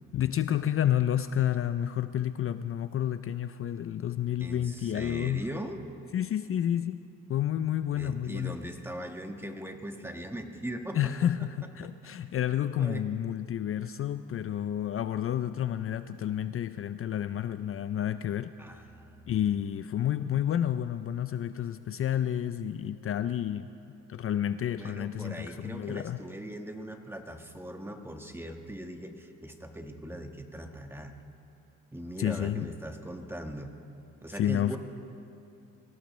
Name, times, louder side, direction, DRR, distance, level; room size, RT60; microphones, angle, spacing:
voice 1, 0.1-5.4 6.1-7.0 7.3-8.6 10.9-18.5 19.3-23.7 24.1-26.2 32.2-32.7 34.4-34.8, left 10 dB, 45° left, 12 dB, 0.5 m, -30 dB
voice 2, 4.4-5.8 7.9-11.0 12.8-13.1 18.6-19.3 24.7-31.1 31.9-33.7 34.2-34.8, right 1 dB, 10° right, 5 dB, 1.4 m, -40 dB
25.0 x 17.0 x 3.2 m, 2.6 s
cardioid pair, 90°, 30 cm